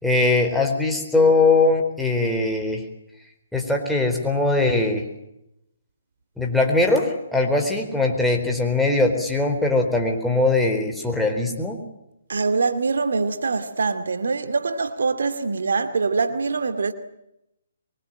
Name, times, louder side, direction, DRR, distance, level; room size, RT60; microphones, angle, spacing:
voice 1, 0.0-2.8 3.5-5.0 6.4-11.8, left 2 dB, ahead, 4.2 m, -21 dB
voice 2, 12.3-16.9, right 4 dB, 75° right, 2.4 m, -24 dB
24.5 x 24.0 x 9.0 m
hypercardioid pair, 145°, 0 cm